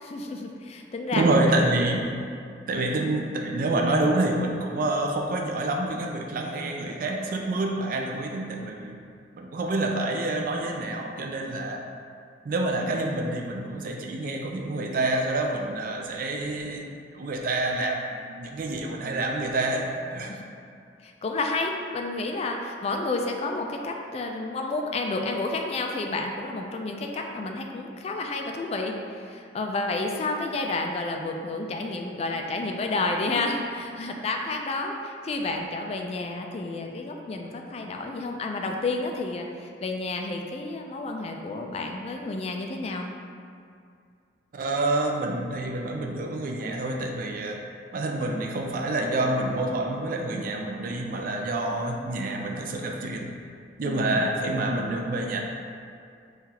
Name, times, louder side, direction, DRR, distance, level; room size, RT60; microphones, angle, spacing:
voice 1, 0.0-1.2 20.3-20.4 21.0-43.1 53.8-54.3, left 3 dB, 35° left, 2 dB, 0.3 m, -30 dB
voice 2, 1.1-2.1 2.7-9.0 9.3-11.9 12.4-20.3 44.5-47.6 47.9-53.3 53.8-55.4, right 2 dB, 50° right, 1 dB, 0.4 m, -27 dB
5.5 x 2.4 x 2.8 m, 2.4 s
head